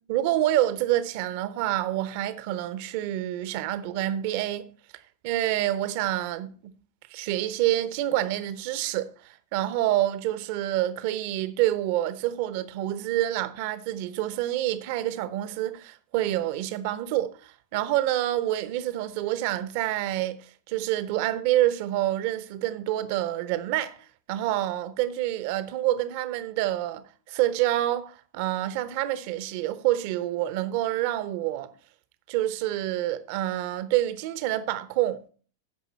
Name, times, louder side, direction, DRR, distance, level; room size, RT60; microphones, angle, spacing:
voice 1, 0.1-4.7 5.2-6.7 7.1-23.9 24.3-31.7 32.3-35.2, right 14 dB, 45° right, 0.8 m, -27 dB
15.0 x 5.5 x 4.2 m
figure-of-eight pair, 90°, 0 cm